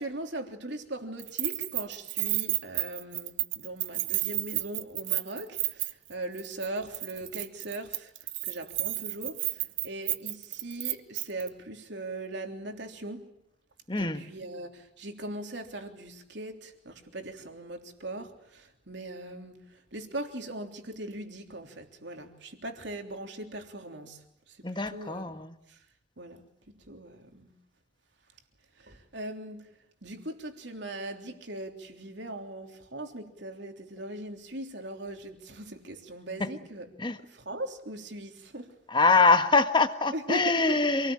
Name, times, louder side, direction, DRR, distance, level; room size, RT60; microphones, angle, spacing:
voice 1, 0.0-8.1 8.4-13.3 14.0-25.8 26.2-27.5 28.8-29.7 30.0-36.9 37.2-38.8 40.1-40.8, right 1 dB, 65° right, 3.4 m, -40 dB
Keys jangling, 1.2-6.1 6.4-6.7 6.9-11.5, right 17 dB, 80° right, 1.0 m, -31 dB
voice 2, 13.9-14.2 24.6-25.5 36.4-36.5 37.0-37.2 38.9-41.1, left 3 dB, 25° left, 1.5 m, -24 dB
27.5 x 19.0 x 8.9 m
head